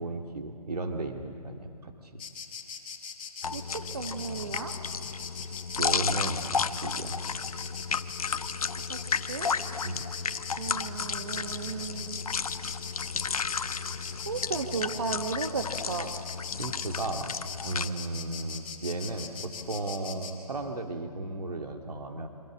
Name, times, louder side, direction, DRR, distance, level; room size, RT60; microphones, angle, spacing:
voice 1, 0.0-2.1 5.8-7.2 9.8-10.0 16.5-17.3 17.6-22.3, right 2 dB, 80° right, 3 dB, 2.1 m, -35 dB
Insect, 2.2-20.3, left 6 dB, 15° left, 1.4 m, -41 dB
sound 1, 3.4-17.9, left 5 dB, 65° left, 0.8 m, -33 dB
voice 2, 3.5-4.7 8.9-9.0 9.3-9.5 10.6-12.4 14.3-16.1, right 4 dB, 40° right, 6 dB, 1.0 m, -35 dB
28.0 x 24.5 x 6.1 m, 2.3 s
hypercardioid pair, 175°, 20 cm